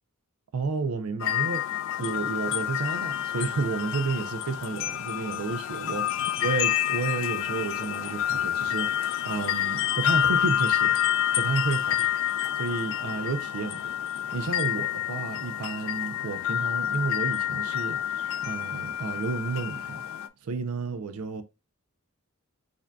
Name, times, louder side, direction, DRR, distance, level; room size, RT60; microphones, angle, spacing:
voice 1, 0.5-1.6 2.0-6.0 6.4-13.9 14.3-20.0 20.4-21.4, right 4 dB, 85° right, 0.5 m, -31 dB
sound 1, 1.2-20.3, left 11 dB, 65° left, 0.3 m, -28 dB
4.9 x 2.7 x 2.2 m
head